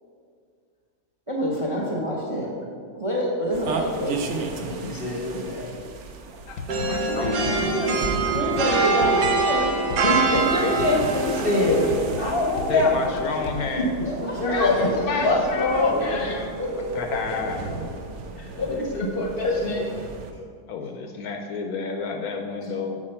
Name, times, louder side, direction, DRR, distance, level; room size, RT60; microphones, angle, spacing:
voice 1, 1.3-2.5 2.9-4.4 8.3-9.8 14.0-15.4 16.6-17.4 20.3-20.4 22.6-22.7, equal, 30° right, -2 dB, 0.6 m, -28 dB
sound 1, 3.5-20.3, right 4 dB, 65° right, 0.7 m, -36 dB
voice 2, 4.6-5.8 6.9-8.1 8.8-9.2 10.0-11.8 12.2-13.1 13.8-13.9 14.2-16.3 18.4-19.9, left 2 dB, 45° left, -1 dB, 0.8 m, -25 dB
sound 2, 6.5-13.6, left 5 dB, 90° left, 1.3 m, -35 dB
voice 3, 6.7-7.9 10.6-11.0 12.7-14.0 14.5-16.6 17.0-17.7 20.7-23.0, left 4 dB, 70° left, 4 dB, 1.0 m, -30 dB
sound 3, 6.7-17.0, right 3 dB, 80° right, 1.3 m, -26 dB
7.4 x 4.8 x 4.3 m, 2.2 s
omnidirectional pair, 1.8 m